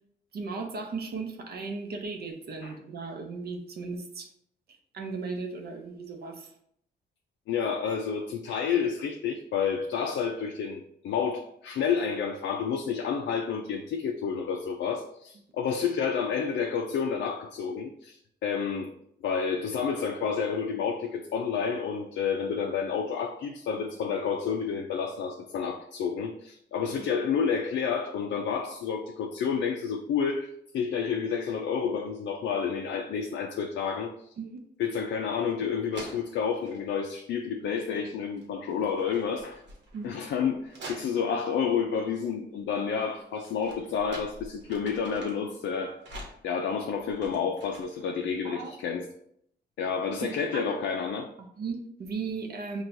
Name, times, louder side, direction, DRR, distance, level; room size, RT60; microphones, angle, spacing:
voice 1, 0.3-4.3 4.9-6.5 34.4-34.6 39.9-40.1 48.4-48.7 50.2-50.6 51.4-52.8, right 4 dB, 60° right, 3 dB, 0.6 m, -36 dB
voice 2, 7.5-18.9 19.2-34.1 34.8-39.6 40.0-49.1 49.8-51.3, left 6 dB, 80° left, 3 dB, 0.4 m, -30 dB
sound 1, 35.5-35.6 35.9-36.9 37.6-38.1 38.4-41.6 43.1-45.5 46.0-48.1, right 1 dB, 75° right, 1.1 m, -47 dB
5.9 x 2.3 x 2.6 m, 0.70 s
cardioid pair, 125°, 19 cm